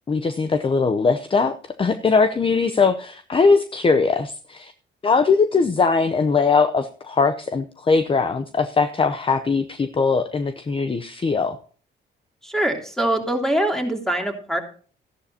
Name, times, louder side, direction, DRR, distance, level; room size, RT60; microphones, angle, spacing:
voice 1, 0.1-4.7 5.0-11.6, left 4 dB, 25° left, 10 dB, 0.7 m, -20 dB
voice 2, 12.4-14.6, right 1 dB, ahead, 2 dB, 3.1 m, -23 dB
14.0 x 11.0 x 2.8 m, 0.42 s
cardioid pair, 90°, 20 cm